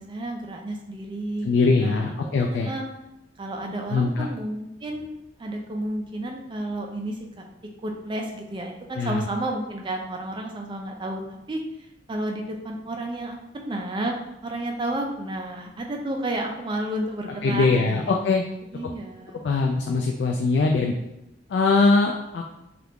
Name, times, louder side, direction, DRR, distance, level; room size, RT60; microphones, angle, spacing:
voice 1, 0.0-2.8 3.4-7.4 7.8-14.2 14.4-18.0 18.4-19.5, right 1 dB, 25° right, 2 dB, 0.4 m, -32 dB
voice 2, 1.4-2.7 3.9-4.3 9.0-9.3 17.4-18.4 19.4-20.9 21.5-22.5, left 3 dB, 70° left, 1 dB, 0.3 m, -22 dB
2.8 x 2.4 x 3.4 m, 0.87 s
head